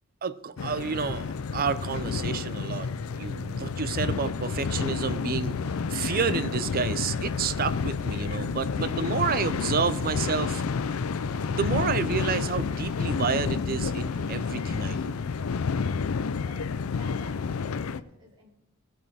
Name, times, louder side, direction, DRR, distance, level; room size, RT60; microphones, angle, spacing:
voice 1, 0.2-5.6 5.9-10.6 11.5-15.2, right 6 dB, 45° right, 14 dB, 0.5 m, -30 dB
sound 1, 0.5-16.4, right 1 dB, 80° right, 3.3 m, -58 dB
sound 2, 0.6-18.0, left 5 dB, 85° left, 0.5 m, -30 dB
sound 3, 6.7-15.0, left 2 dB, 40° left, 2.2 m, -57 dB
voice 2, 16.3-18.5, right 2 dB, 25° right, -6 dB, 4.6 m, -52 dB
17.5 x 7.5 x 4.2 m, 0.78 s
head